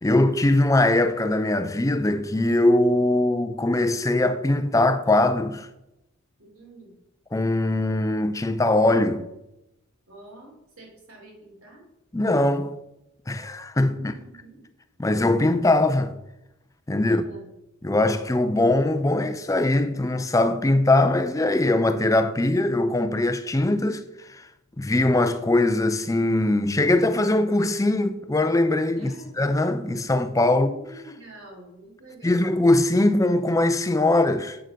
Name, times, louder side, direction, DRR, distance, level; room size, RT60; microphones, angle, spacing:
voice 1, 0.0-5.7 7.3-9.3 12.1-12.8 13.3-14.1 15.0-16.2 16.9-17.2 17.8-24.0 24.3-24.5 24.8-29.1 29.4-30.7 32.2-34.6, left 2 dB, 15° left, 0.4 m, -21 dB
voice 2, 6.4-6.9 10.1-10.5 10.8-11.8 14.0-14.6 17.1-17.5 28.9-29.4 30.5-32.5, right 1 dB, 85° right, 3.6 m, -47 dB
7.7 x 6.5 x 5.2 m
head